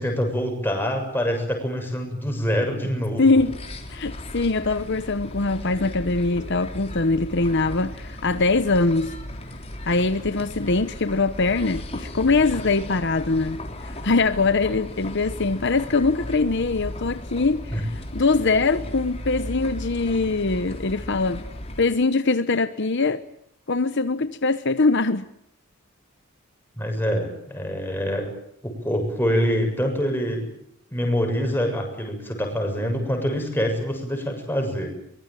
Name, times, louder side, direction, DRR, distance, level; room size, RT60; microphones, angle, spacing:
voice 1, 0.0-3.4 17.7-17.8 26.8-28.3 28.6-30.5 30.9-34.9, equal, 10° left, 7.0 m, -25 dB
voice 2, 3.2-3.6 3.9-9.2 9.9-21.5 21.8-23.2 23.7-25.3, left 3 dB, 55° left, 1.0 m, -22 dB
sound 1, 3.4-21.9, left 1 dB, 30° left, 3.8 m, -36 dB
23.5 x 22.5 x 9.1 m
head